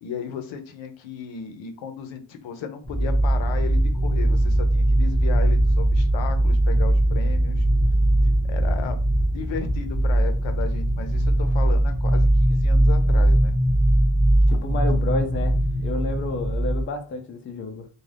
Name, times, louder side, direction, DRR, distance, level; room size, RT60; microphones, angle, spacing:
voice 1, 0.0-7.6 8.5-9.0 9.3-13.6 14.5-14.8, left 7 dB, 85° left, 0.7 m, -35 dB
sound 1, 2.8-16.8, right 1 dB, 5° left, 0.7 m, -20 dB
voice 2, 14.5-17.9, left 3 dB, 30° left, 0.4 m, -30 dB
2.4 x 2.3 x 3.3 m
wide cardioid pair, 160°, 45 cm